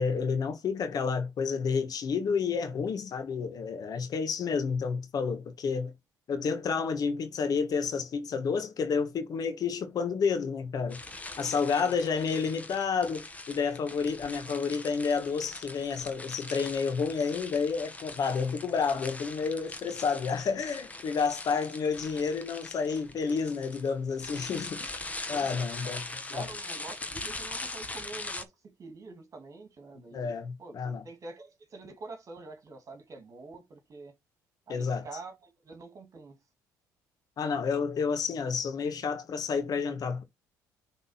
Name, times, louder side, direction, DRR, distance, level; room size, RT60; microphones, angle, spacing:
voice 1, 0.0-5.9 6.3-11.0 11.4-25.0 25.3-26.0 26.3-26.5 30.1-31.0 34.7-35.0 37.4-40.2, left 5 dB, 55° left, 1.5 m, -30 dB
sound 1, 10.9-28.4, left 2 dB, 20° left, 1.4 m, -42 dB
voice 2, 11.4-12.1 19.8-19.9 25.3-25.7 26.3-34.1 34.7-36.4, right 3 dB, 45° right, 2.4 m, -46 dB
6.1 x 3.8 x 5.7 m
supercardioid pair, 75°, 8 cm